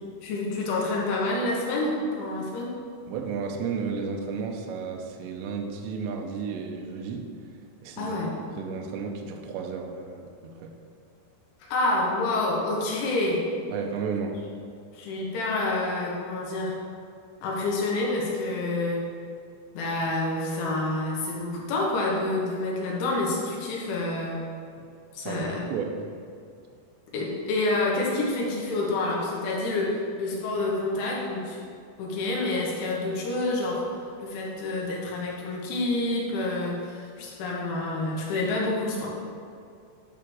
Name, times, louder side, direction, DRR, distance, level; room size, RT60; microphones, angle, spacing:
voice 1, 0.2-2.7 8.0-8.3 11.7-13.5 14.9-16.8 17.4-19.0 19.8-24.4 25.1-25.6 27.1-31.6 32.0-39.1, left 2 dB, 70° left, -3 dB, 3.7 m, -28 dB
voice 2, 3.1-7.3 7.8-10.7 13.7-14.4 25.2-26.2, right 5 dB, 80° right, 2 dB, 2.6 m, -33 dB
11.0 x 3.7 x 6.2 m, 2.4 s
omnidirectional pair, 5.9 m